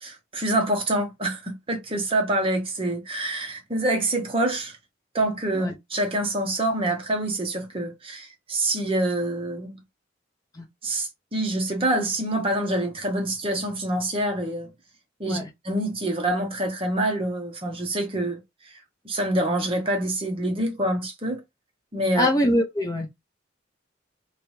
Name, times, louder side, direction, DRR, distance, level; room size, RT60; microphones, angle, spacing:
voice 1, 0.0-4.7 5.1-9.8 10.8-14.7 15.2-15.4 15.6-18.4 19.0-21.4 21.9-22.3, right 1 dB, 30° right, 1.0 m, -26 dB
voice 2, 22.2-23.1, left 1 dB, 20° left, 0.7 m, -23 dB
3.3 x 3.1 x 3.1 m
head